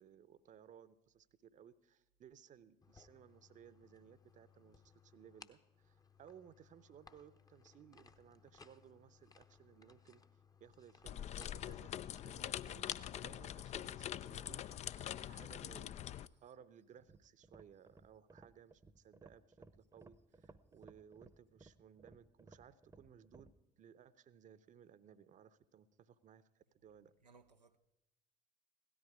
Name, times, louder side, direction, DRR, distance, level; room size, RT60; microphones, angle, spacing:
voice 1, 0.0-10.2 10.6-14.9 15.3-15.9 16.4-23.5 23.8-27.1, right 8 dB, 35° right, 0.8 m, -61 dB
sound 1, 2.8-15.3, left 4 dB, 15° left, 0.9 m, -62 dB
sound 2, 11.0-16.3, left 11 dB, 35° left, 0.4 m, -44 dB
voice 2, 15.0-15.4 16.1-16.5 17.1-17.2 27.2-27.8, right 4 dB, 90° right, 0.5 m, -68 dB
sound 3, 16.9-23.6, right 3 dB, 15° right, 0.8 m, -61 dB
17.0 x 13.5 x 4.9 m
figure-of-eight pair, 55°, 21 cm